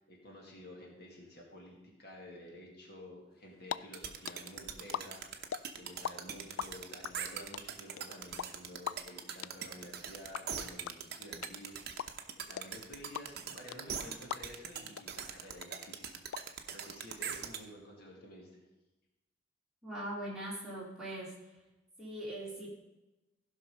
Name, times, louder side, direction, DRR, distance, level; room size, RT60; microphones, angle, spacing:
voice 1, 0.0-18.6, left 1 dB, 50° left, -1 dB, 2.2 m, -51 dB
sound 1, 3.4-3.8 4.0-6.1 6.4-14.7 15.0-15.1 15.3-16.4, left 9 dB, 80° left, 0.3 m, -39 dB
sound 2, 3.9-17.6, right 7 dB, 50° right, 0.9 m, -41 dB
voice 2, 19.8-21.5 22.0-22.7, right 1 dB, 5° right, -7 dB, 2.8 m, -41 dB
15.0 x 5.7 x 5.4 m, 1.0 s
head